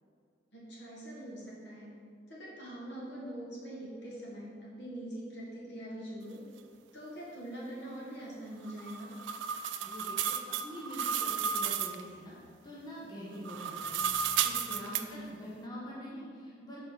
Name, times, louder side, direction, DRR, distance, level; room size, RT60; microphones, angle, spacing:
voice 1, 0.5-1.9 2.3-6.4 6.9-9.1 14.7-15.3, right 1 dB, 65° left, -5 dB, 1.8 m, -43 dB
sound 1, 8.7-12.0 13.4-15.0, right 8 dB, 80° right, 0.4 m, -33 dB
voice 2, 9.8-12.4 12.6-16.8, equal, 20° left, -6 dB, 1.0 m, -45 dB
6.5 x 4.3 x 5.3 m, 2.3 s
head